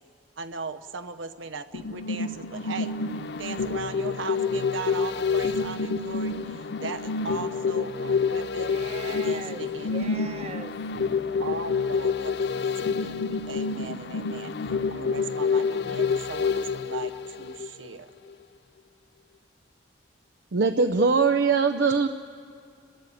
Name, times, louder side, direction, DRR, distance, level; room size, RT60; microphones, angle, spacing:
voice 1, 0.4-8.7 9.1-10.0 11.4-14.5 14.9-18.1, right 4 dB, 90° right, 9 dB, 0.9 m, -38 dB
sound 1, 1.7-18.0 18.3-18.4, left 5 dB, 60° left, 0.5 m, -28 dB
voice 2, 8.6-10.7, right 2 dB, 35° right, 7 dB, 1.0 m, -40 dB
voice 3, 20.5-22.1, right 4 dB, 65° right, 7 dB, 0.6 m, -21 dB
30.0 x 13.5 x 8.5 m, 2.4 s
head